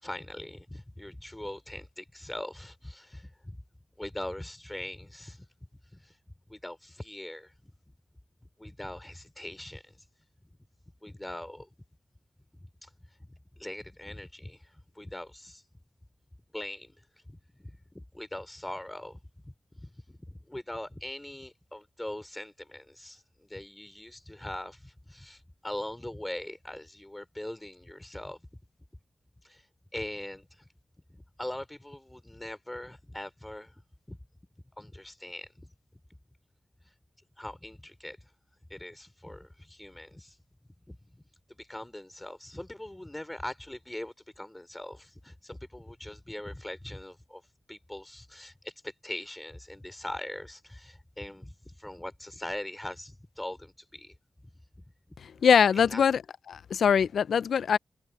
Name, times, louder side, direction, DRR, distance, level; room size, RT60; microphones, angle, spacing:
voice 1, 0.0-3.6 4.0-5.5 5.9-6.1 6.5-7.7 8.6-10.0 11.0-11.7 12.8-12.9 13.3-15.6 16.5-17.0 17.3-19.5 19.8-28.4 29.4-29.7 29.9-30.7 31.1-33.8 34.1-34.2 34.8-35.7 37.4-38.2 38.7-40.4 40.9-41.2 41.5-47.4 47.7-54.1 54.4-54.5 54.8-54.9 55.7-56.0, left 1 dB, 15° left, 4.6 m, -41 dB
voice 2, 55.4-56.2 56.5-57.8, left 7 dB, 90° left, 0.4 m, -22 dB
cardioid pair, 45°, 0 cm